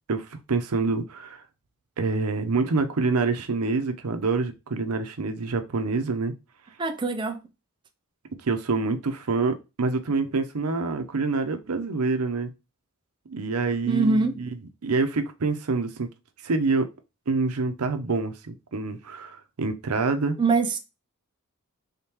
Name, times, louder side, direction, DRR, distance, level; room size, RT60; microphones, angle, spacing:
voice 1, 0.1-1.4 2.0-6.3 8.4-12.5 13.3-14.5 14.8-16.1 16.4-16.9 17.3-20.4, right 3 dB, 90° right, 0.7 m, -26 dB
voice 2, 6.8-7.4 13.9-14.5 20.4-20.8, right 4 dB, 20° right, 0.4 m, -23 dB
3.6 x 3.6 x 2.9 m
head